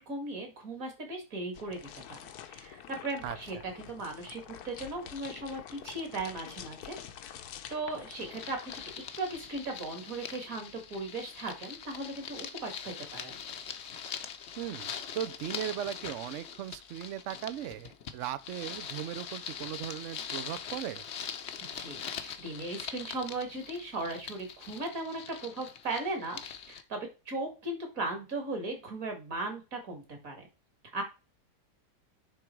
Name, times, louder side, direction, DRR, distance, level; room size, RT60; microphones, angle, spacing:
voice 1, 0.0-2.2 2.5-7.0 7.7-8.6 9.2-13.4 21.7-30.4 30.9-31.0, right 2 dB, 55° right, 2.6 m, -37 dB
sound 1, 1.5-9.0, left 9 dB, 70° left, 1.2 m, -47 dB
sound 2, 8.1-26.8, left 7 dB, 55° left, 0.8 m, -42 dB
voice 2, 14.6-21.0, right 11 dB, 75° right, 0.6 m, -38 dB
10.0 x 3.7 x 4.5 m
omnidirectional pair, 1.8 m